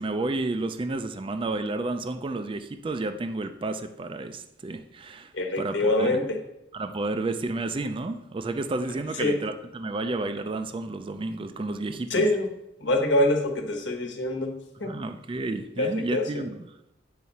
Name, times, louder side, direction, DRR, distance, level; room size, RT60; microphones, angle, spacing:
voice 1, 0.0-6.2 6.7-12.2 14.8-16.6, right 2 dB, 25° right, 8 dB, 0.4 m, -31 dB
voice 2, 5.3-6.4 9.2-9.4 12.1-12.5 12.8-14.9 15.8-16.4, left 1 dB, 70° left, 2 dB, 1.3 m, -25 dB
9.3 x 4.8 x 4.2 m, 0.86 s
head